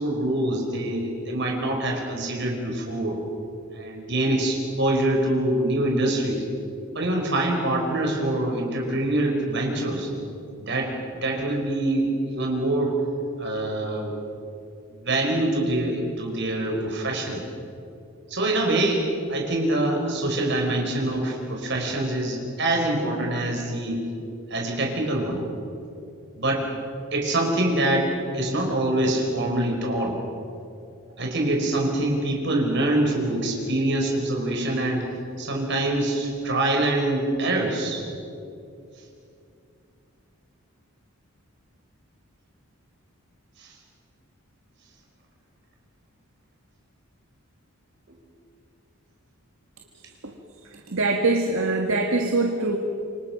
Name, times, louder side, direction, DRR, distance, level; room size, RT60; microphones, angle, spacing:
voice 1, 0.0-3.2 3.7-6.4 6.9-10.1 10.6-10.9 11.2-12.9 13.4-14.3 15.0-17.4 18.3-24.0 24.5-25.4 26.4-26.7 27.1-28.1 28.3-30.2 31.2-35.1 35.4-38.0 43.6-43.7, right 1 dB, 55° right, 1 dB, 5.0 m, -25 dB
voice 2, 50.6-52.8, right 2 dB, 70° right, 3 dB, 1.7 m, -23 dB
27.0 x 25.0 x 6.0 m, 2.6 s
head